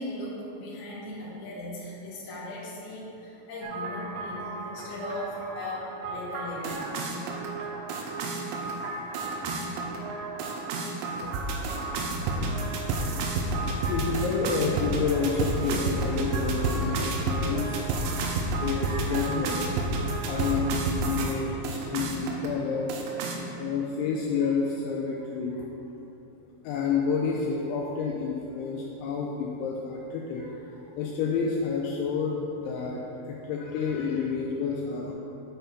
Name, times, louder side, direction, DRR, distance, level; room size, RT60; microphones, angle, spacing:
voice 1, 0.0-6.9, left 1 dB, 65° left, -6 dB, 1.9 m, -38 dB
sound 1, 3.6-21.3 21.6-22.5 22.9-23.4, right 2 dB, 85° right, 3.3 m, -31 dB
voice 2, 12.1-12.7 13.1-18.1 18.6-19.6 20.3-23.0 23.3-25.7 26.6-35.1, left 5 dB, 85° left, -1 dB, 2.7 m, -30 dB
9.1 x 4.5 x 5.2 m, 3.0 s
omnidirectional pair, 5.8 m